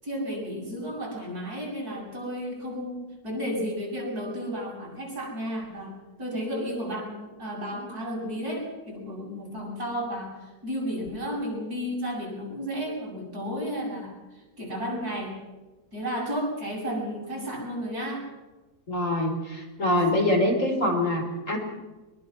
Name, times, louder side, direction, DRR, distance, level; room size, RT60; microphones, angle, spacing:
voice 1, 0.0-15.4 15.9-18.3, equal, 60° right, -2 dB, 8.5 m, -33 dB
voice 2, 18.9-21.6, left 1 dB, 50° left, 2 dB, 5.0 m, -24 dB
24.5 x 22.0 x 6.1 m, 1.2 s
omnidirectional pair, 1.8 m